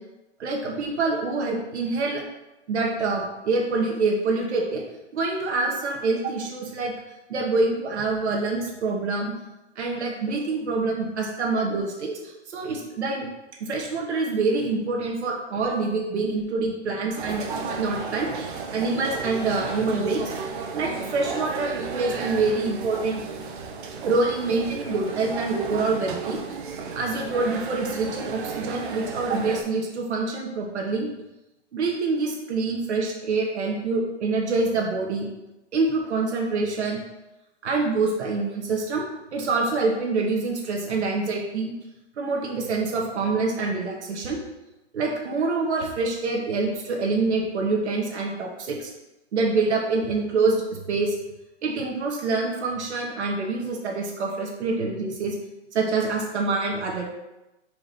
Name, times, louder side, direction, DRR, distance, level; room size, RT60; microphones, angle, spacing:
voice 1, 0.4-2.2 2.7-4.8 5.1-6.9 7.3-9.3 9.7-12.2 12.5-13.3 13.6-17.5 17.8-20.2 20.7-23.2 24.0-26.4 26.9-31.1 31.7-35.2 35.7-37.0 37.6-41.7 42.2-44.4 44.9-48.9 49.3-50.6 50.9-51.1 51.6-55.3 55.7-57.0, right 3 dB, 70° right, -1 dB, 1.6 m, -26 dB
sound 1, 17.2-29.6, right 4 dB, 45° right, 0.9 m, -33 dB
5.0 x 3.9 x 5.1 m, 0.96 s
hypercardioid pair, 140°, 35 cm